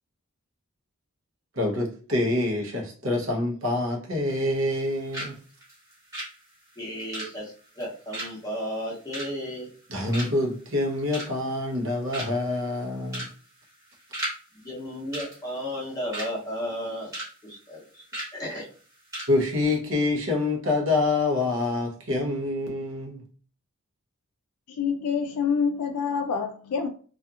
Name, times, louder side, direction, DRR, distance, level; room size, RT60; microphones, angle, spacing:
voice 1, 1.6-5.4 9.9-13.3 19.3-23.2, left 2 dB, 65° right, 0.7 m, -26 dB
sound 1, 4.3-4.9 5.1-5.4 5.6-9.8 10.1-10.5 10.9-11.5 11.8-11.9 12.1-12.5 13.1-13.4 13.6-14.4 14.6-14.8 15.1-16.3 16.7-17.3 17.6-17.7 18.1-18.3 18.8-18.9 19.1-19.3 19.6-19.8, right 1 dB, 15° right, 1.0 m, -36 dB
voice 2, 6.8-9.7 14.5-17.1 17.4-18.0 18.3-18.7, equal, 15° left, 0.7 m, -34 dB
voice 3, 24.7-26.9, left 6 dB, 90° left, 0.3 m, -26 dB
2.7 x 2.4 x 2.3 m
head